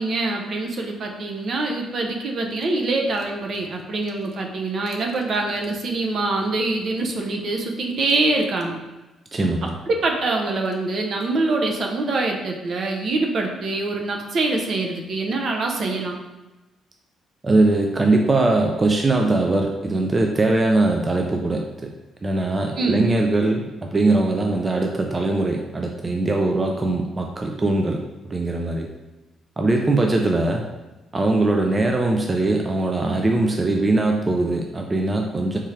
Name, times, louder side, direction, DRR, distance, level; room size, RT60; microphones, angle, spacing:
voice 1, 0.0-8.8 9.9-16.2 22.8-23.1, right 2 dB, 55° right, 2 dB, 0.7 m, -24 dB
voice 2, 9.3-9.7 17.4-21.9 22.2-28.9 29.6-30.6 31.1-35.6, right 2 dB, 25° right, 2 dB, 0.4 m, -21 dB
4.2 x 3.6 x 3.2 m, 1.1 s
cardioid pair, 90°, 0 cm